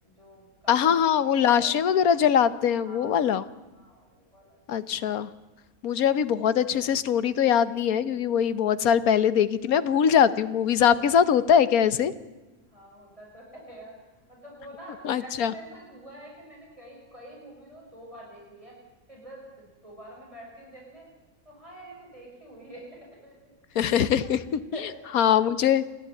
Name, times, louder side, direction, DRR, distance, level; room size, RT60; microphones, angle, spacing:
voice 1, 0.0-1.0 1.3-2.1 2.7-3.5 3.7-5.0 12.7-18.8 19.1-21.1 21.4-24.3 24.7-24.9, right 1 dB, 20° right, -3 dB, 6.2 m, -47 dB
voice 2, 0.7-3.4 4.7-5.3 5.8-12.1 15.0-15.5 23.7-24.6 25.1-25.8, left 8 dB, 80° left, 14 dB, 1.4 m, -22 dB
28.5 x 11.5 x 9.0 m, 1.2 s
omnidirectional pair, 1.5 m